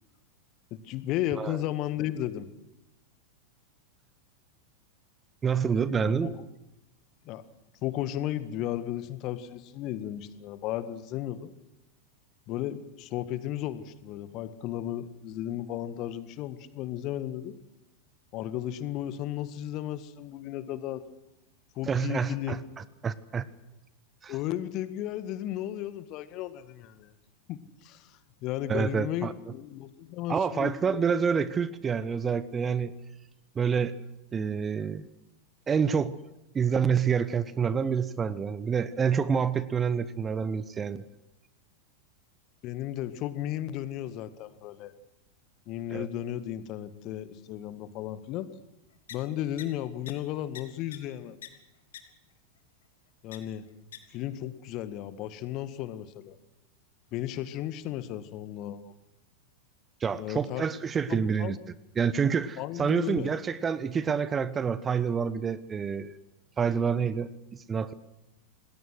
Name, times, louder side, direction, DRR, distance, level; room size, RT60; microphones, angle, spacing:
voice 1, 0.7-2.5 6.0-6.3 7.3-7.4 7.8-11.5 12.5-17.6 18.3-21.1 21.8-22.6 24.3-27.1 27.5-31.0 42.6-44.9 45.7-48.5 49.1-51.4 53.2-53.6 54.1-56.4 57.1-58.9 60.2-60.7 61.1-61.6 62.6-63.3, left 12 dB, 40° left, 13 dB, 1.7 m, -34 dB
voice 2, 5.4-6.4 21.9-23.4 24.2-24.3 28.7-29.3 30.3-32.9 33.5-34.0 34.3-35.1 35.7-36.2 36.5-41.0 45.9-46.0 60.0-61.6 62.0-66.1 66.6-67.9, right 6 dB, 20° right, 17 dB, 1.0 m, -28 dB
sound 1, 49.1-49.2 49.6-49.7 50.1-50.2 50.5-50.6 50.9-51.0 51.4-51.5 51.9-52.0 53.3-53.4 53.9-54.0, left 11 dB, 60° left, 2.8 m, -41 dB
27.0 x 20.0 x 6.4 m, 0.94 s
figure-of-eight pair, 90°, 0 cm